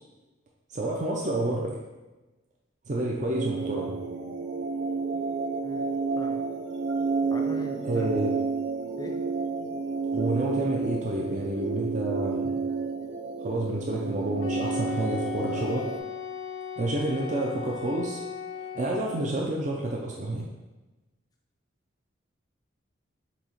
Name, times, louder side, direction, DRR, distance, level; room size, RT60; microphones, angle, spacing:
voice 1, 0.7-1.8 2.9-4.0 7.8-8.3 10.1-12.6 13.4-15.9 16.8-18.2 18.6-20.5, right 1 dB, 40° right, -2 dB, 0.4 m, -29 dB
sound 1, 3.3-16.0, right 4 dB, 85° right, 0.6 m, -30 dB
voice 2, 7.3-8.1 9.0-9.1, left 1 dB, 20° left, 2 dB, 0.4 m, -40 dB
Wind instrument woodwind instrument, 14.4-19.3, left 7 dB, 75° left, 0.6 m, -37 dB
4.1 x 2.8 x 4.3 m, 1.1 s
head